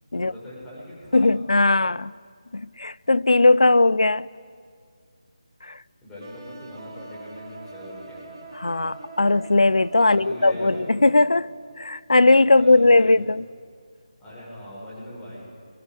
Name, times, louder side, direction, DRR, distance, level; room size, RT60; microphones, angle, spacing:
voice 1, 0.1-1.3 6.0-8.3 10.0-10.8 12.1-13.2 14.2-15.4, left 1 dB, 10° left, 7.8 m, -41 dB
voice 2, 1.1-2.1 2.5-4.3 5.7-5.8 8.6-11.5 11.8-13.4, left 2 dB, 70° left, 0.6 m, -18 dB
sound 1, 6.2-12.0, right 3 dB, 30° right, 4.8 m, -43 dB
22.5 x 22.0 x 8.3 m
figure-of-eight pair, 160°, 3 cm